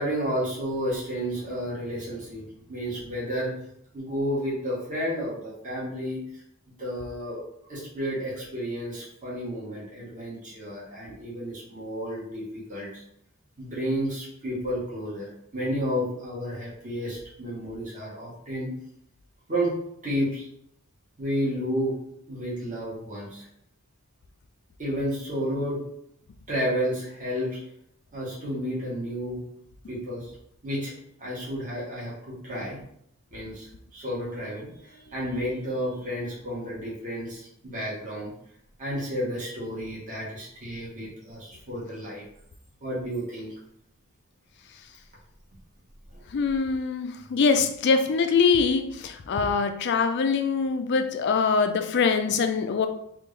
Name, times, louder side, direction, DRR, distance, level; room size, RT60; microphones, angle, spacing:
voice 1, 0.0-2.4 2.7-3.6 3.9-6.2 6.8-7.4 7.7-13.0 13.6-15.3 15.5-18.7 19.5-19.7 20.0-20.4 21.2-21.9 22.3-23.5 24.8-25.8 26.5-27.6 28.1-29.4 29.9-30.3 30.6-30.9 31.2-32.8 33.3-38.3 38.8-42.2 42.8-43.5 46.1-46.2, equal, 35° right, -6 dB, 1.3 m, -31 dB
voice 2, 46.3-52.9, left 5 dB, 55° left, 8 dB, 0.4 m, -23 dB
3.5 x 2.4 x 3.1 m, 0.71 s
head